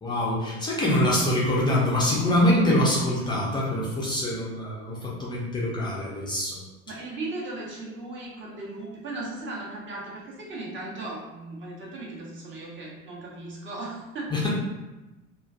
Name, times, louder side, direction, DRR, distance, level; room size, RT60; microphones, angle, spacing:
voice 1, 0.0-6.6 14.3-14.5, left 1 dB, 10° left, -6 dB, 0.4 m, -24 dB
voice 2, 6.9-14.4, right 2 dB, 25° right, -4 dB, 0.8 m, -37 dB
2.4 x 2.3 x 2.4 m, 1.1 s
hypercardioid pair, 85°, 42 cm